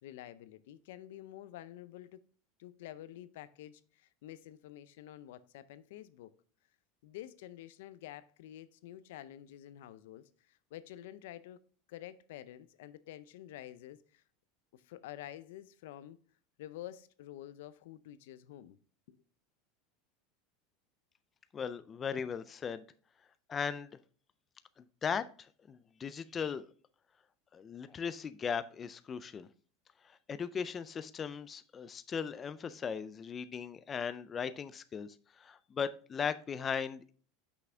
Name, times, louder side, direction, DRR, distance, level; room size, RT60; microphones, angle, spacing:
voice 1, 0.0-2.2 2.6-6.3 7.0-11.6 11.9-14.2 14.7-16.2 16.6-18.8 19.1-19.2, left 13 dB, 80° left, 0.5 m, -49 dB
voice 2, 21.5-22.8 23.5-23.9 25.0-26.7 27.5-29.5 30.0-37.1, left 6 dB, 20° left, 0.3 m, -38 dB
6.0 x 5.8 x 3.3 m
supercardioid pair, 155°, 0 cm